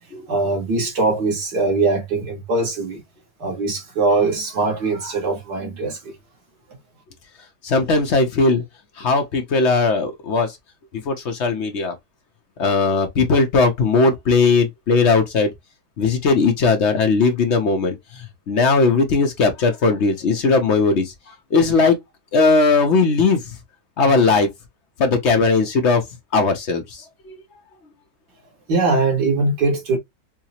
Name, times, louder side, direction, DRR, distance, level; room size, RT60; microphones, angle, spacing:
voice 1, 0.3-3.0 3.4-6.1 28.7-30.0, right 3 dB, 85° right, 2.2 m, -21 dB
voice 2, 7.6-8.6 9.0-10.6 11.0-11.9 12.6-15.5 16.0-21.1 21.5-22.0 22.3-23.4 24.0-24.5 25.0-26.0 26.3-27.4, left 4 dB, 55° left, 0.8 m, -18 dB
4.7 x 2.0 x 2.8 m
omnidirectional pair, 1.7 m